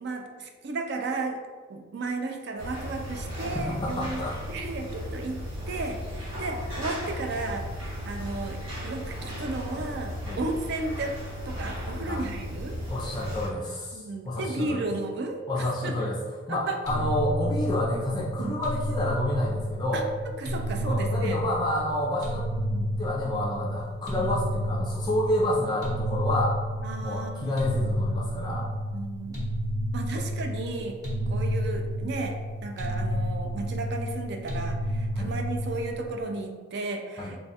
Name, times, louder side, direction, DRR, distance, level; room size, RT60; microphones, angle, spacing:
voice 1, 0.0-1.4 1.7-4.2 4.5-5.4 5.7-11.2 11.5-12.8 13.9-16.0 16.5-16.8 18.4-18.6 19.9-20.0 20.4-21.4 22.7-23.0 24.1-24.3 26.8-27.7 28.9-29.4 29.9-31.0 31.3-37.4, right 3 dB, 60° right, 4 dB, 0.4 m, -34 dB
sound 1, 2.6-13.5, equal, 85° right, 1.2 m, -36 dB
voice 2, 3.5-4.4 10.2-10.4 12.0-12.2 12.9-14.9 15.5-16.2 16.5-20.1 20.8-22.5 23.0-26.6 27.0-28.7 30.1-30.2 35.1-35.3 37.2-37.3, left 1 dB, 20° left, -4 dB, 0.4 m, -29 dB
sound 2, 16.9-36.2, equal, 20° right, 1.0 m, -30 dB
3.1 x 2.3 x 4.1 m, 1.5 s
head